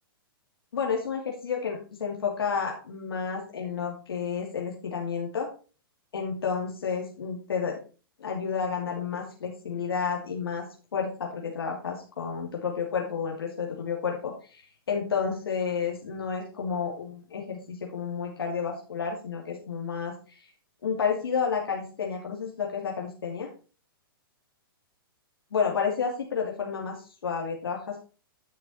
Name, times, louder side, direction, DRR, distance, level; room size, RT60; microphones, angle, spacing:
voice 1, 0.7-5.5 6.1-7.8 8.2-20.5 20.8-23.5 25.5-28.0, left 6 dB, 85° left, 0 dB, 2.5 m, -31 dB
10.0 x 6.8 x 4.2 m, 0.36 s
hypercardioid pair, 125°, 12 cm